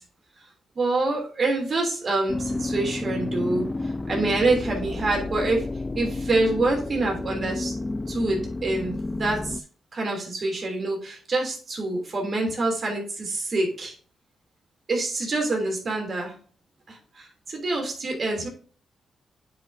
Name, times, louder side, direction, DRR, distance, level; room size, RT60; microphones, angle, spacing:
voice 1, 0.7-5.7 5.9-7.7 8.1-9.6 9.9-13.9 14.9-16.3 16.9-18.5, right 2 dB, 45° right, 1 dB, 3.1 m, -26 dB
sound 1, 2.3-9.6, left 2 dB, 20° left, 0.4 m, -31 dB
9.7 x 5.4 x 2.8 m, 0.42 s
cardioid pair, 80°, 0 cm